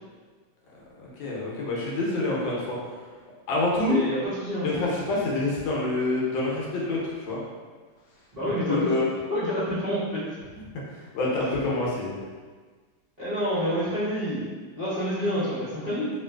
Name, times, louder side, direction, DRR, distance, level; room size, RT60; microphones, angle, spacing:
voice 1, 1.0-2.7 3.5-4.0 4.6-7.4 8.6-9.1 11.1-12.2, left 2 dB, 75° left, -5 dB, 1.3 m, -27 dB
voice 2, 3.8-5.0 8.3-9.0 9.3-10.2 13.2-14.5 14.8-16.1, equal, 55° right, -14 dB, 0.4 m, -28 dB
3.1 x 2.8 x 2.2 m, 1.5 s
omnidirectional pair, 2.2 m